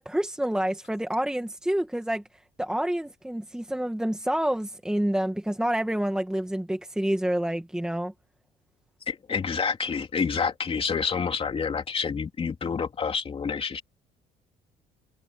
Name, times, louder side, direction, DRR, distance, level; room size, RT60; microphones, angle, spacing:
voice 1, 0.0-2.2 2.6-8.1, right 1 dB, 5° right, 2.0 m, -28 dB
voice 2, 9.1-13.8, left 6 dB, 35° left, 3.1 m, -28 dB
cardioid pair, 110°, 17 cm